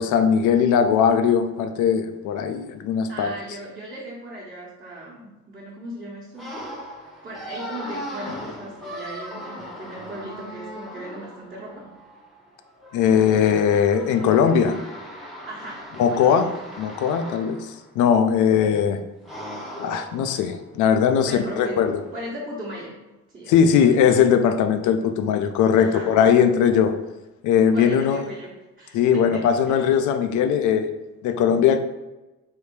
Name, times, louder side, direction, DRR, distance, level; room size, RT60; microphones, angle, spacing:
voice 1, 0.0-3.3 12.9-14.8 16.0-16.5 16.8-19.0 19.8-22.0 23.5-27.0 27.4-28.3 28.9-30.9 31.2-31.8, left 7 dB, 85° left, 9 dB, 0.5 m, -19 dB
voice 2, 3.1-6.5 7.2-11.9 15.5-16.6 21.2-23.0 23.3-24.0 25.7-26.2 27.7-29.9, right 1 dB, 30° right, -8 dB, 1.2 m, -37 dB
sound 1, 6.4-17.8 19.3-20.7 21.0-22.2, equal, ahead, 0.9 m, -39 dB
3.4 x 2.7 x 4.5 m, 1.1 s
cardioid pair, 90°, 30 cm